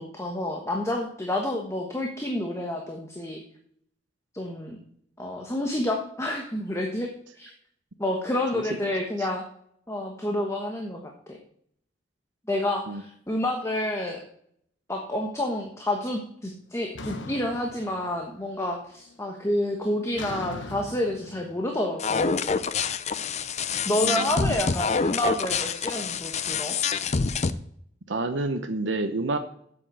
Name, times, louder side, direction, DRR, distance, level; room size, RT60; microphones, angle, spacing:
voice 1, 0.0-3.4 4.3-4.8 5.2-7.1 7.3-7.5 8.0-9.4 9.9-11.4 12.5-14.2 14.9-22.5 23.8-26.8, left 1 dB, 15° left, 1 dB, 1.3 m, -29 dB
voice 2, 8.5-8.9 9.2-9.3 12.9-13.0 24.0-24.6 28.1-29.4, right 2 dB, 75° right, 7 dB, 0.8 m, -29 dB
sound 1, 17.0-18.5 18.8-19.3 20.2-23.2, left 2 dB, 80° left, 1.1 m, -41 dB
sound 2, 22.0-27.5, left 5 dB, 40° left, 0.5 m, -27 dB
8.0 x 7.9 x 7.7 m, 0.67 s
head